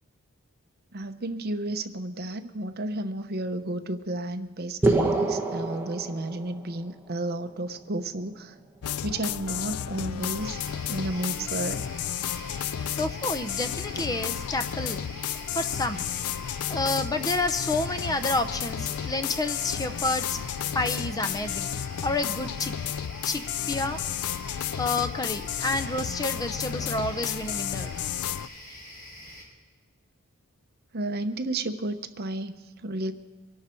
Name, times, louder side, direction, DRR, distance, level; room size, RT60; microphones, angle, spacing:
voice 1, 0.9-8.6 9.0-10.6 10.9-11.8 30.9-33.1, right 1 dB, 45° right, 8 dB, 0.8 m, -32 dB
sound 1, 4.8-6.8, right 2 dB, 10° right, 1.1 m, -26 dB
sound 2, 8.8-28.5, left 9 dB, 75° left, 0.4 m, -32 dB
sound 3, 10.4-29.4, left 1 dB, 40° left, 4.0 m, -44 dB
voice 2, 12.8-15.0 15.5-16.0 16.7-20.4 20.7-22.7 23.2-23.4 23.7-24.0 24.7-28.0, left 2 dB, 15° left, 9 dB, 0.6 m, -29 dB
24.0 x 11.5 x 4.4 m, 1.4 s
head